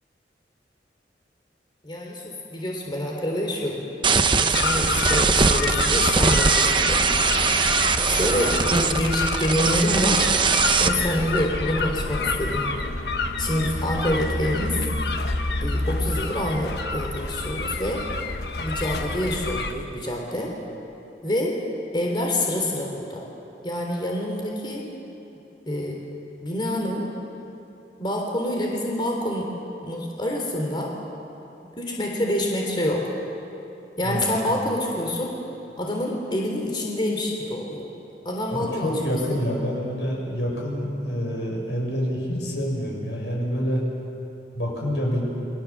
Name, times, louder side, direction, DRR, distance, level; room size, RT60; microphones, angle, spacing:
voice 1, 1.8-3.8 4.4-7.0 8.1-12.7 13.4-14.8 15.6-18.0 18.6-20.5 21.2-21.6 21.9-23.2 23.6-24.9 25.7-26.0 26.4-27.1 28.0-29.5 29.8-30.9 31.8-33.1 34.0-35.3 35.8-37.9 38.2-38.9, left 1 dB, 25° left, 0 dB, 3.3 m, -27 dB
sound 1, 4.0-10.9, right 5 dB, 30° right, 0.9 m, -21 dB
sound 2, 4.5-19.7, left 2 dB, 65° left, 1.4 m, -27 dB
voice 2, 34.0-34.4 38.5-43.8 44.5-45.2, equal, 90° left, -1 dB, 7.4 m, -27 dB
28.5 x 23.5 x 7.4 m, 2.9 s
head